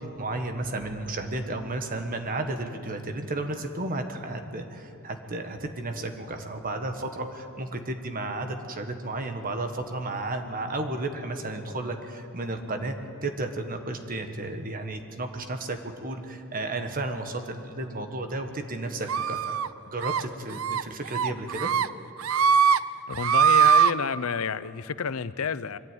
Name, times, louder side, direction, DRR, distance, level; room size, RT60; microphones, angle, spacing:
voice 1, 0.0-12.9 13.2-19.6 19.9-21.7, right 2 dB, 40° right, 6 dB, 1.5 m, -33 dB
sound 1, 19.1-19.7 20.0-20.2 20.6-20.8 21.1-21.9 22.2-22.8 23.1-23.9, right 7 dB, 70° right, 0.5 m, -21 dB
voice 2, 23.1-25.8, left 6 dB, 75° left, 16 dB, 0.6 m, -30 dB
23.0 x 13.5 x 9.2 m, 2.6 s
head